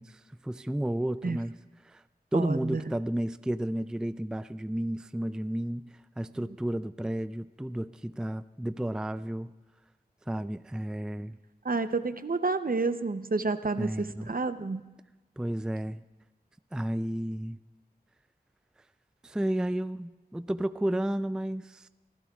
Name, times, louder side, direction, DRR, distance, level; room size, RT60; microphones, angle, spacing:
voice 1, 0.0-2.0 2.3-9.5 10.3-11.4 13.8-14.3 15.4-16.0 16.7-17.6 19.2-21.9, right 1 dB, 5° right, 13 dB, 0.3 m, -32 dB
voice 2, 2.3-2.8 11.6-14.8, right 3 dB, 60° right, 11 dB, 0.6 m, -29 dB
25.5 x 15.0 x 2.4 m, 1.2 s
wide cardioid pair, 55°, 17 cm